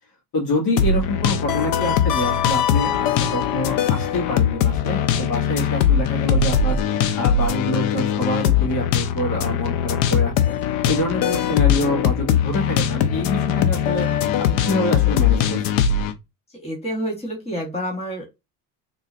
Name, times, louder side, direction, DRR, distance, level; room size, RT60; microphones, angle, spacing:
voice 1, 0.3-6.8 7.2-10.5 10.9-14.1 14.4-15.6, left 2 dB, 55° left, 0 dB, 1.9 m, -26 dB
sound 1, 0.8-16.1, left 8 dB, 85° left, 0.7 m, -21 dB
voice 2, 16.5-18.3, equal, 15° left, -1 dB, 1.6 m, -29 dB
3.9 x 3.0 x 2.5 m, 0.22 s
cardioid pair, 135°, 42 cm